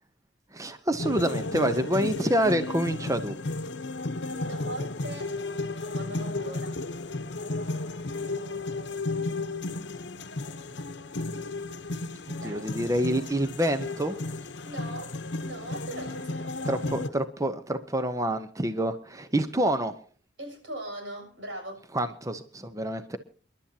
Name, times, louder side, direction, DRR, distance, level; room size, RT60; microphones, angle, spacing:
voice 1, 0.5-3.3 12.4-14.2 16.6-19.9 21.9-23.2, right 1 dB, 20° right, 9 dB, 0.8 m, -27 dB
sound 1, 1.0-17.1, left 2 dB, 70° left, 0.9 m, -33 dB
voice 2, 4.2-5.4 5.9-6.8 12.4-12.8 14.6-17.1 20.4-21.9, right 1 dB, 85° right, 2 dB, 7.1 m, -40 dB
28.0 x 11.5 x 2.8 m, 0.42 s
head